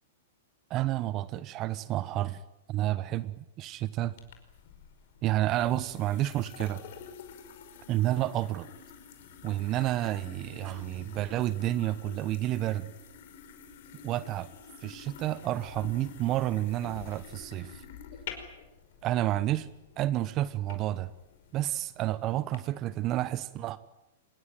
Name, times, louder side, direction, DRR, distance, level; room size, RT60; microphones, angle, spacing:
voice 1, 0.7-2.4 2.7-4.1 5.2-6.8 7.9-8.7 9.4-12.9 14.0-14.5 14.8-17.8 19.0-19.7 20.0-21.1 21.5-23.8, right 14 dB, 35° right, 17 dB, 1.0 m, -30 dB
sound 1, 4.2-22.6, left 7 dB, 60° left, 5.0 m, -48 dB
25.5 x 21.0 x 9.2 m, 0.95 s
hypercardioid pair, 110°, 0 cm